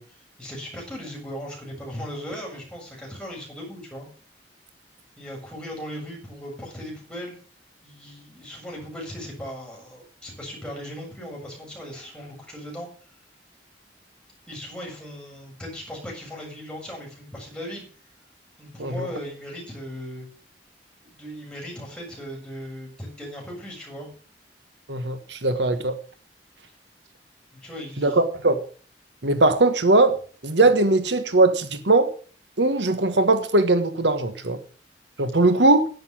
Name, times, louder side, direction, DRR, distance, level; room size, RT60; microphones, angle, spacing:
voice 1, 0.0-4.1 5.2-7.4 7.8-12.9 14.5-17.8 18.6-20.3 21.0-24.1 27.6-28.2, equal, 5° left, 7.0 m, -37 dB
voice 2, 24.9-25.9 28.0-28.6 29.2-30.2 30.4-32.1 32.6-34.6 35.2-35.9, right 2 dB, 80° right, 1.4 m, -20 dB
11.0 x 9.4 x 7.4 m
head